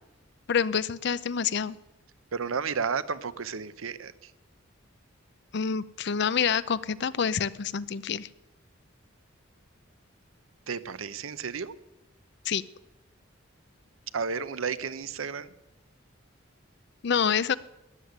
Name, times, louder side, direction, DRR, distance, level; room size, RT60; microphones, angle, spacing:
voice 1, 0.5-1.8 5.5-8.3 12.5-12.6 17.0-17.5, left 7 dB, 55° left, 17 dB, 0.5 m, -27 dB
voice 2, 2.3-4.3 10.7-11.7 14.1-15.5, right 5 dB, 85° right, 15 dB, 0.7 m, -32 dB
13.0 x 9.7 x 9.4 m, 0.98 s
head